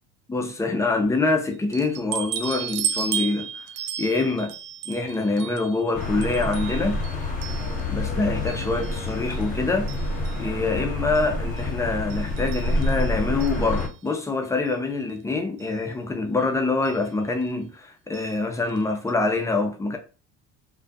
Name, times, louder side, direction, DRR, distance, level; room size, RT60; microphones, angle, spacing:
voice 1, 0.3-3.7 4.0-4.6 4.9-7.0 7.9-9.9 10.4-20.0, left 3 dB, 10° left, 0.4 m, -25 dB
sound 1, 1.7-8.1 8.5-9.5 9.9-10.5 11.1-11.3 11.6-11.7 12.1-14.1 15.1-15.2 15.6-15.7 16.8-17.0 18.1-18.4 18.7-18.8 19.1-19.2, right 8 dB, 60° right, 0.4 m, -34 dB
sound 2, 5.9-13.9, left 2 dB, 25° left, 0.8 m, -28 dB
2.3 x 2.2 x 2.5 m
supercardioid pair, 105°, 30 cm